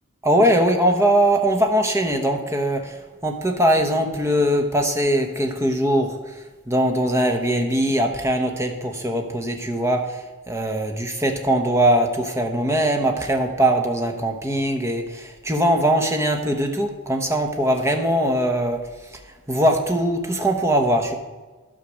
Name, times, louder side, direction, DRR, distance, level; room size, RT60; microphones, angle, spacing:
voice 1, 0.2-6.2 6.7-18.8 19.1-19.2 19.5-21.1, right 1 dB, 10° right, 4 dB, 1.0 m, -21 dB
11.5 x 5.9 x 6.2 m, 1.3 s
head